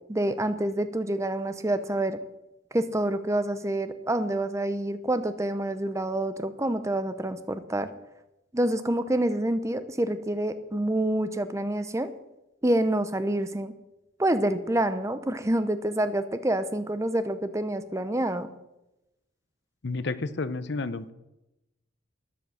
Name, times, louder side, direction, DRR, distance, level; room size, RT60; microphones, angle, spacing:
voice 1, 0.1-2.2 2.7-7.9 8.5-12.1 12.6-13.7 14.2-18.5, right 1 dB, 15° right, 11 dB, 0.6 m, -27 dB
voice 2, 19.8-21.1, left 3 dB, 55° left, 14 dB, 0.7 m, -31 dB
13.0 x 10.5 x 6.4 m, 0.94 s
head